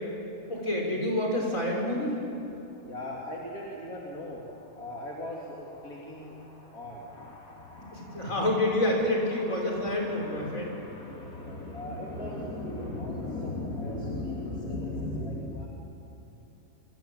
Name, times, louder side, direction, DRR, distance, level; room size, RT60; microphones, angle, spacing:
voice 1, 0.5-2.2 7.9-10.7, left 1 dB, 65° left, -1 dB, 6.3 m, -28 dB
voice 2, 2.7-8.5 9.1-15.7, left 2 dB, 90° left, -3 dB, 3.4 m, -38 dB
27.0 x 24.0 x 9.2 m, 2.9 s
omnidirectional pair, 1.5 m